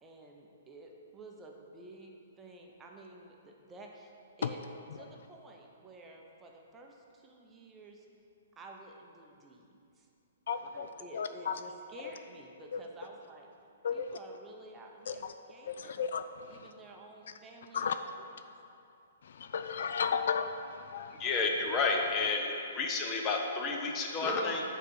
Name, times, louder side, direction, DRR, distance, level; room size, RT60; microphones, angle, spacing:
voice 1, 0.0-2.1 2.4-4.1 4.4-4.6 4.9-6.9 7.2-8.0 8.6-9.6 10.7-13.5 13.9-15.2 15.5-16.0 16.5-17.9, right 2 dB, 15° right, 0 dB, 0.8 m, -51 dB
voice 2, 10.5-11.6 12.7-12.8 13.8-14.2 15.1-15.3 15.7-16.7 17.7-18.0 19.2-21.2, left 6 dB, 70° left, 9 dB, 0.3 m, -34 dB
voice 3, 21.2-24.6, left 3 dB, 25° left, 2 dB, 0.9 m, -31 dB
7.3 x 4.0 x 6.4 m, 2.6 s
hypercardioid pair, 140°, 0 cm